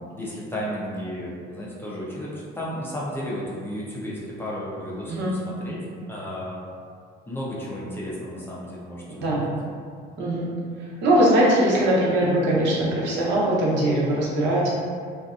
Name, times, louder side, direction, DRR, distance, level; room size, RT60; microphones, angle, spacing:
voice 1, 0.0-5.8 6.1-6.6 7.3-9.4, equal, 10° left, -7 dB, 0.5 m, -33 dB
voice 2, 10.2-10.5 11.0-14.7, right 1 dB, 70° right, -6 dB, 0.8 m, -21 dB
2.6 x 2.4 x 2.3 m, 2.2 s
cardioid pair, 120°, 19 cm